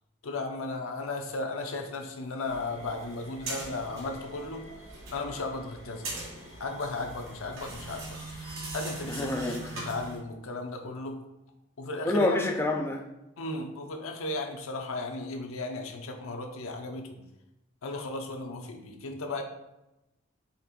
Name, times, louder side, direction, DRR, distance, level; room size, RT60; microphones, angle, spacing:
voice 1, 0.2-4.6 5.1-6.1 6.6-11.1 11.8-12.5 13.4-17.2 17.8-19.4, left 2 dB, 75° left, 4 dB, 0.6 m, -35 dB
sound 1, 2.4-10.2, right 2 dB, 70° right, 1.4 m, -41 dB
voice 2, 9.1-9.8 12.1-13.0, left 2 dB, 10° left, 2 dB, 0.3 m, -28 dB
4.1 x 2.5 x 4.1 m, 0.94 s
head